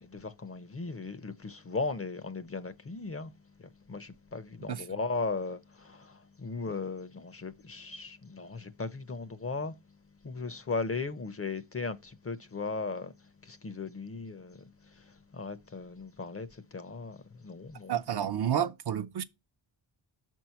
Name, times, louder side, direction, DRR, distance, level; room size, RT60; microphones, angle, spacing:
voice 1, 0.0-3.3 3.9-9.7 10.2-13.1 13.5-14.7 15.3-16.5 16.7-17.2 17.4-17.9, left 4 dB, 30° left, 0.6 m, -37 dB
voice 2, 4.7-5.0 17.9-19.2, right 9 dB, 55° right, 0.6 m, -30 dB
6.0 x 4.5 x 5.7 m
wide cardioid pair, 80°, 46 cm